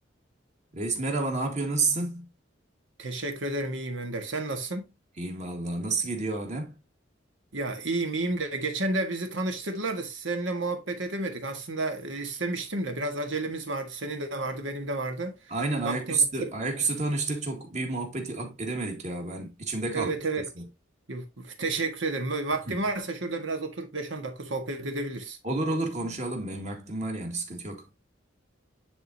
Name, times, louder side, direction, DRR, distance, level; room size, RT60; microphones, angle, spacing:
voice 1, 0.7-2.3 5.2-6.7 15.5-20.1 20.6-20.7 22.7-22.8 25.4-27.9, right 3 dB, 40° right, 1.8 m, -30 dB
voice 2, 3.0-4.9 7.5-15.4 15.8-16.3 19.9-20.5 21.1-25.4, right 2 dB, 80° right, 1.6 m, -31 dB
10.0 x 3.9 x 2.8 m
head